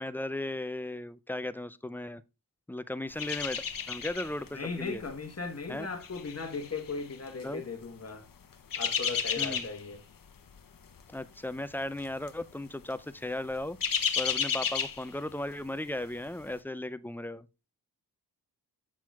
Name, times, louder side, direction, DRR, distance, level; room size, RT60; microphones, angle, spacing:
voice 1, 0.0-2.2 2.7-5.0 5.7-5.9 7.4-7.6 9.4-9.7 11.1-13.8 14.2-17.5, left 1 dB, 5° left, 0.3 m, -36 dB
sound 1, 3.2-4.5 4.8-5.1 5.8-7.4 8.4-9.9 10.3-10.6 10.9-11.0 12.0-12.4 12.7-12.8 13.3-15.6 16.0-16.1, left 7 dB, 50° left, 0.8 m, -32 dB
voice 2, 4.5-8.3 8.8-10.0, left 4 dB, 35° left, 1.1 m, -37 dB
7.6 x 6.1 x 2.3 m
cardioid pair, 65°, 42 cm